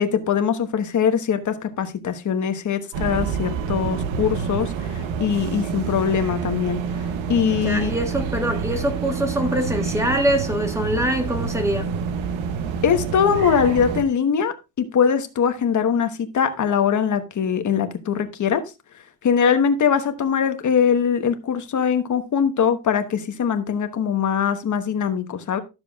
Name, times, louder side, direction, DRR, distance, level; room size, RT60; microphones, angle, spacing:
voice 1, 0.0-6.8 7.3-7.9 12.8-18.6 19.2-25.6, left 7 dB, 40° left, 1.1 m, -22 dB
sound 1, 2.9-14.0, right 6 dB, 90° right, 1.0 m, -28 dB
voice 2, 7.6-11.9, equal, 5° right, 1.4 m, -24 dB
12.5 x 6.8 x 2.3 m
cardioid pair, 155°, 46 cm